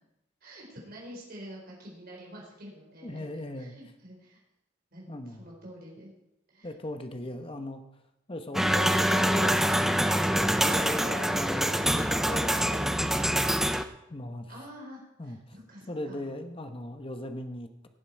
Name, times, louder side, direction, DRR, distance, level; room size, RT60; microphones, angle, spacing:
voice 1, 0.4-3.2 3.6-4.4 4.9-6.1 6.5-6.7 7.2-7.4 14.5-15.4 15.7-16.2, equal, 50° right, -3 dB, 4.3 m, -47 dB
voice 2, 3.0-3.8 5.1-5.5 6.6-7.8 8.3-10.2 10.6-13.8 14.1-14.5 15.2-15.4 15.9-17.9, left 1 dB, 30° left, 7 dB, 1.0 m, -39 dB
sound 1, 8.5-13.8, equal, ahead, 0.5 m, -25 dB
17.5 x 7.6 x 4.6 m, 0.87 s
head